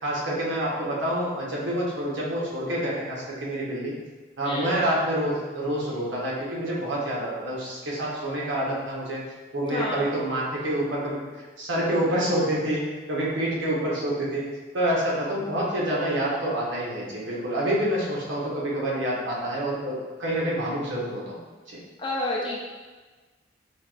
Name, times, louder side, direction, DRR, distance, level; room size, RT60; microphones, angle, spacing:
voice 1, 0.0-3.9 4.4-9.2 9.5-11.2 11.6-12.8 13.1-14.4 14.7-21.4 21.7-21.8, right 1 dB, 90° right, -5 dB, 0.9 m, -27 dB
voice 2, 9.7-10.0 22.0-22.6, left 2 dB, 25° left, -4 dB, 0.4 m, -29 dB
4.6 x 2.3 x 2.3 m, 1.3 s
head